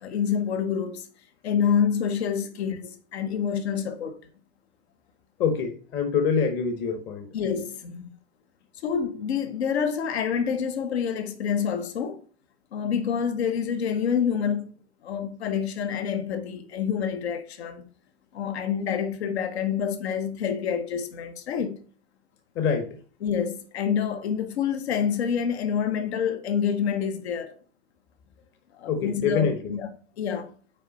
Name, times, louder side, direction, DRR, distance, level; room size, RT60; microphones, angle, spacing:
voice 1, 0.0-1.1 1.4-4.2 7.3-8.1 8.8-12.2 12.7-14.7 15.0-17.9 18.3-21.8 23.2-27.6 28.7-29.9 30.2-30.5, left 7 dB, 80° left, 0.9 m, -27 dB
voice 2, 5.4-7.3 22.5-23.0 28.9-29.8, left 6 dB, 35° left, 0.9 m, -25 dB
5.4 x 4.6 x 4.0 m
hypercardioid pair, 115°, 32 cm